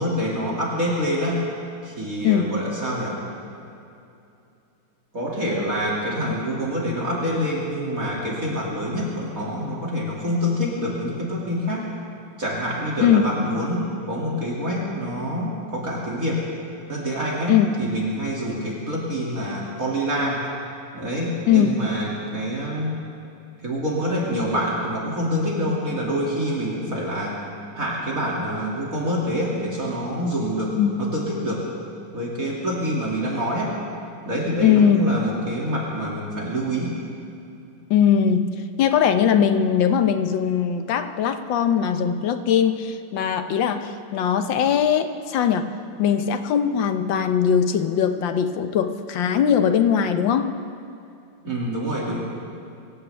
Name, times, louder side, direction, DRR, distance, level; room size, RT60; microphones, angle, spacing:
voice 1, 0.0-1.4 1.8-3.2 5.1-11.9 12.4-16.4 16.9-20.4 20.9-22.9 23.6-27.4 27.8-31.7 32.1-33.7 34.2-36.9 51.4-52.2, equal, 45° right, -5 dB, 2.8 m, -26 dB
voice 2, 34.6-35.0 37.9-38.5 38.8-45.7 46.0-50.6, left 8 dB, 75° left, 8 dB, 1.5 m, -20 dB
24.0 x 16.5 x 3.4 m, 2.6 s
omnidirectional pair, 2.1 m